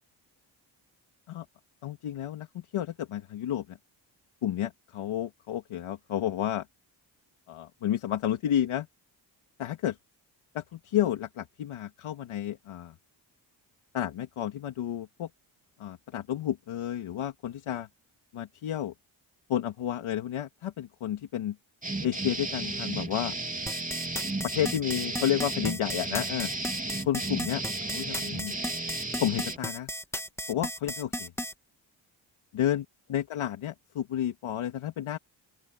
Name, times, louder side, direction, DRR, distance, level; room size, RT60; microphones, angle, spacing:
voice 1, 1.8-3.8 4.4-6.6 7.5-8.9 9.6-10.0 10.5-12.9 13.9-15.3 15.8-17.9 18.3-18.9 19.5-21.6 22.0-23.3 24.4-26.5 27.1-27.6 27.9-28.6 29.2-29.9 30.5-31.3 32.5-35.2, left 11 dB, 85° left, 2.4 m, -31 dB
sound 1, 21.8-29.6, right 2 dB, 15° right, 3.3 m, -34 dB
sound 2, 23.7-31.5, equal, 5° left, 2.3 m, -35 dB
open air
cardioid pair, 75°, 48 cm